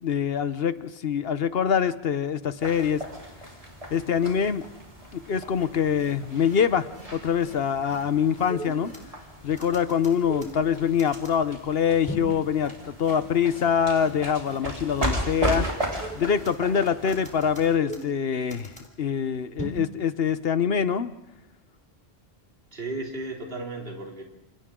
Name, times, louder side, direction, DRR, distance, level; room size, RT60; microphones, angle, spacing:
voice 1, 0.0-3.0 3.9-4.7 5.1-8.9 9.4-15.7 16.1-21.1, left 7 dB, 70° left, 13 dB, 1.1 m, -24 dB
sound 1, 2.6-17.8, right 1 dB, 35° right, 4.4 m, -36 dB
sound 2, 5.6-5.7 6.0-6.1 6.5-6.6 6.9-7.1 7.4-7.5 7.9-8.0 8.4-9.2 9.6-11.4 12.1-12.4 12.6-12.7 13.0-13.1 13.5-13.6 14.0-14.1 14.4-14.6 14.9-15.1 15.4-15.5 15.9-16.7 17.1-18.9 19.6-19.8, right 1 dB, 5° left, 3.6 m, -38 dB
voice 2, 22.7-24.2, right 2 dB, 65° right, 0 dB, 3.4 m, -35 dB
28.5 x 28.5 x 3.8 m, 0.96 s
omnidirectional pair, 1.1 m